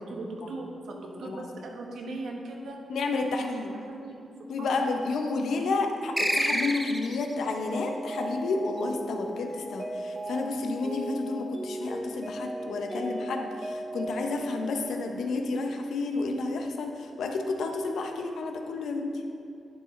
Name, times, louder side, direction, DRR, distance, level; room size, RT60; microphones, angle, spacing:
voice 1, 0.0-2.8 3.3-4.2 4.6-5.0, right 2 dB, 80° right, 0 dB, 1.0 m, -39 dB
voice 2, 1.2-1.6 2.9-3.8 4.5-19.1, left 3 dB, 85° left, 4 dB, 0.6 m, -31 dB
sound 1, 6.2-7.3, equal, 5° right, 0.5 m, -27 dB
Mallet percussion, 7.4-15.5, right 1 dB, 35° right, 1.1 m, -37 dB
11.0 x 4.7 x 3.1 m, 2.6 s
cardioid pair, 100°, 0 cm